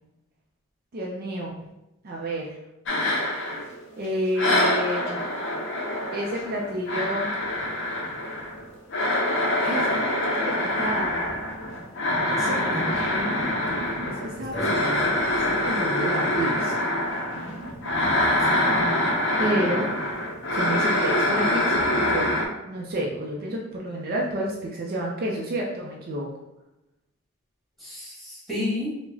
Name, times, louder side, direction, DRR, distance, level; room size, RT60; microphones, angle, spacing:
voice 1, 0.9-1.5 2.0-2.6 4.0-5.1 6.1-7.3 9.6-11.3 12.2-13.4 14.0-16.8 19.4-19.9 20.5-22.3 22.6-26.3, right 1 dB, 45° right, -2 dB, 0.4 m, -30 dB
sound 1, 2.9-4.1 4.4-22.4, left 1 dB, 60° left, 0.6 m, -25 dB
voice 2, 12.3-12.9 14.4-15.0 18.4-18.9 27.8-29.0, left 1 dB, ahead, -8 dB, 1.4 m, -32 dB
4.6 x 2.1 x 2.7 m, 0.94 s
head